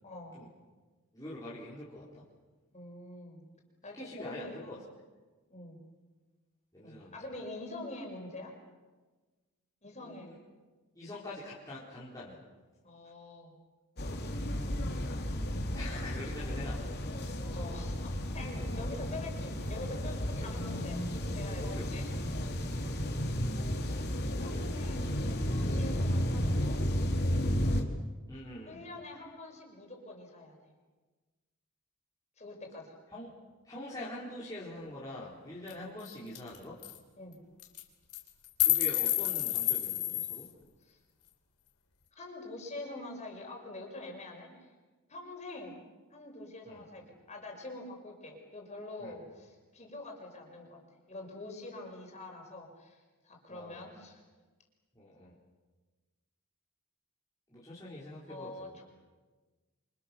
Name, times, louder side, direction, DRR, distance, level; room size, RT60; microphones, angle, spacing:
voice 1, 0.0-0.3 2.7-3.4 3.8-4.8 5.5-5.8 6.8-8.5 9.8-10.3 12.8-13.5 14.6-14.8 17.5-22.1 24.4-26.8 28.7-30.6 32.4-32.9 37.2-37.4 40.8-41.0 42.2-44.7 45.1-45.8 46.1-50.8 51.1-54.2 58.3-58.8, left 2 dB, 30° left, 1 dB, 6.2 m, -45 dB
voice 2, 1.1-2.2 3.9-4.8 6.7-7.1 10.0-10.4 11.0-12.4 15.7-17.1 18.6-18.7 20.4-20.7 21.6-22.0 22.8-23.0 25.7-25.9 28.3-28.8 33.1-33.3 33.6-36.8 38.6-40.5 46.7-46.8 49.0-49.1 53.5-53.9 55.0-55.3 57.5-58.8, left 1 dB, 15° left, -8 dB, 4.3 m, -44 dB
sound 1, 14.0-27.8, equal, 45° left, 3.2 m, -33 dB
sound 2, 35.7-35.8 36.0-36.1 36.3-36.6 36.8-37.0 37.6-37.8 38.1-40.4, left 15 dB, 85° left, 3.5 m, -29 dB
28.0 x 27.0 x 7.0 m, 1.3 s
head